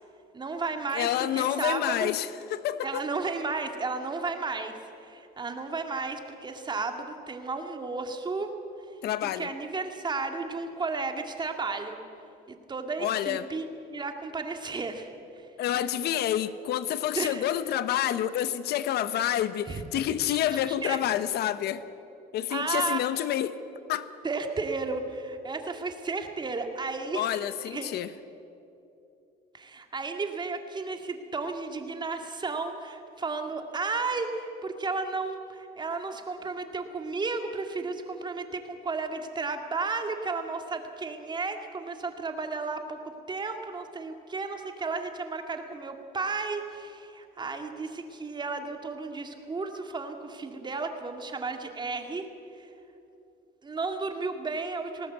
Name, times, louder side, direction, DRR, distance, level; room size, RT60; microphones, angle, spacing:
voice 1, 0.3-2.1 2.8-8.5 9.2-12.0 12.5-15.1 15.4-15.5 15.9-16.1 17.1-17.5 19.7-19.8 20.3-21.0 22.5-23.1 24.2-27.3 27.7-27.9 29.5-43.0 43.3-52.3 52.6-52.7 53.6-55.1, right 4 dB, 25° right, 5 dB, 2.2 m, -33 dB
voice 2, 0.9-3.0 9.0-9.5 13.0-13.4 15.6-21.8 22.3-23.5 23.9-24.1 27.1-28.1, left 11 dB, 75° left, 14 dB, 0.9 m, -28 dB
19.5 x 18.5 x 8.1 m, 2.8 s
cardioid pair, 110°, 17 cm